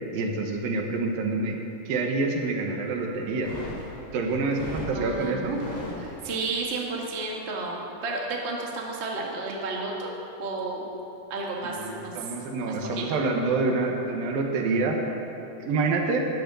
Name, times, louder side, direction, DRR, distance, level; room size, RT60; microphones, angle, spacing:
voice 1, 0.1-1.6 1.9-3.5 4.1-5.6 11.6-15.0 15.6-16.2, right 3 dB, 75° right, 2 dB, 2.9 m, -27 dB
sound 1, 3.3-6.5, left 1 dB, 5° left, 2.6 m, -38 dB
voice 2, 4.8-10.1 10.4-10.9 11.3-12.3 12.6-13.0, right 3 dB, 40° right, -2 dB, 0.8 m, -32 dB
13.0 x 10.5 x 6.9 m, 2.9 s
omnidirectional pair, 4.3 m